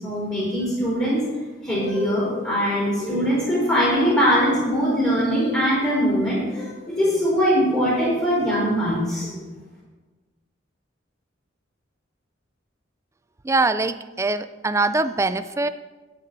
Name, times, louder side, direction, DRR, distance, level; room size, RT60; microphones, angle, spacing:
voice 1, 0.0-1.2 1.6-9.5, equal, 15° left, -9 dB, 4.2 m, -22 dB
voice 2, 13.5-15.7, right 3 dB, 15° right, 12 dB, 0.3 m, -23 dB
12.5 x 9.3 x 4.1 m, 1.3 s
head